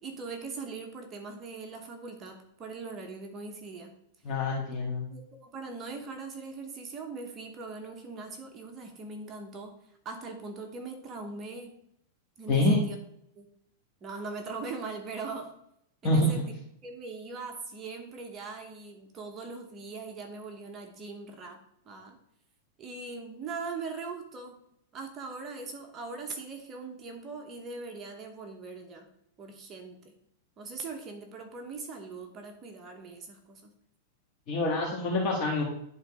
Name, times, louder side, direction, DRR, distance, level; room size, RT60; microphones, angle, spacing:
voice 1, 0.0-3.9 5.1-11.7 12.4-13.0 13.3-13.5 14.0-15.5 16.0-16.5 16.8-22.2 22.8-24.6 24.9-29.1 29.4-30.1 30.6-33.7, right 4 dB, 25° right, 3 dB, 1.1 m, -41 dB
voice 2, 4.2-5.1 12.5-12.8 16.0-16.3 34.5-35.6, left 2 dB, 35° left, -3 dB, 1.7 m, -26 dB
11.0 x 3.9 x 4.9 m, 0.74 s
supercardioid pair, 155°, 0 cm